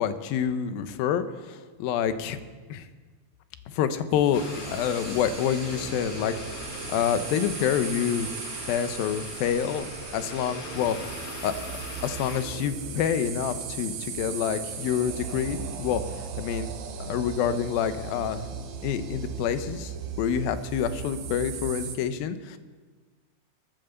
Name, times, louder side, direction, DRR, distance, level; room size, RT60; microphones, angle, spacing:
voice 1, 0.0-2.4 2.7-2.9 3.7-8.3 8.7-11.0 11.4-11.7 12.0-16.0 16.4-16.7 17.0-18.5 18.8-22.6, left 8 dB, 85° left, 10 dB, 2.7 m, -27 dB
sound 1, 4.1-22.0, right 6 dB, 85° right, 3.4 m, -37 dB
sound 2, 4.3-12.4, left 4 dB, 50° left, 2.2 m, -41 dB
21.0 x 9.0 x 6.9 m, 1.4 s
omnidirectional pair, 4.1 m